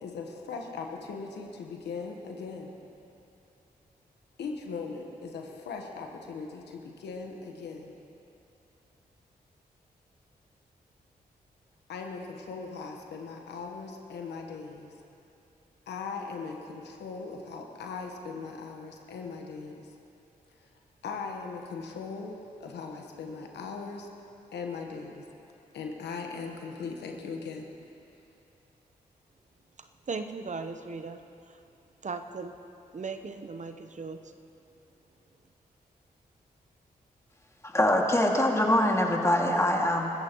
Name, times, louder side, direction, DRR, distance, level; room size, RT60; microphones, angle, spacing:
voice 1, 0.0-2.7 4.4-8.0 11.9-14.9 15.9-19.9 20.6-20.7 21.0-22.3 22.6-24.1 24.5-25.2 25.7-27.7, left 4 dB, 85° left, 2 dB, 1.2 m, -39 dB
voice 2, 30.1-31.2 32.0-32.5 32.9-34.2, right 4 dB, 45° right, 8 dB, 0.8 m, -37 dB
voice 3, 37.6-40.1, left 1 dB, 15° left, 0 dB, 2.2 m, -24 dB
23.0 x 14.0 x 3.0 m, 2.8 s
supercardioid pair, 40°, 17 cm